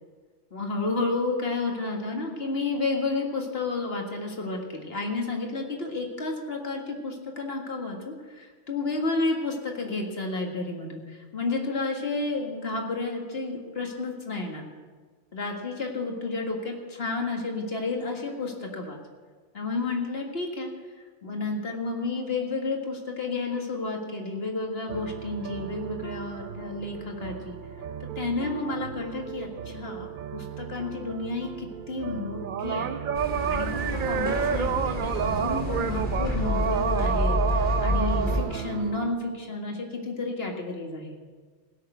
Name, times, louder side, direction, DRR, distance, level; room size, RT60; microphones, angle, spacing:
voice 1, 0.5-14.6 15.3-19.0 19.5-20.7 21.2-27.6 28.2-33.1 33.5-41.2, left 3 dB, 60° left, 1 dB, 2.1 m, -31 dB
sound 1, 24.9-39.2, right 8 dB, 60° right, 0.6 m, -31 dB
sound 2, 33.1-38.4, left 1 dB, 40° left, 3.1 m, -28 dB
16.5 x 6.6 x 8.1 m, 1.5 s
omnidirectional pair, 1.2 m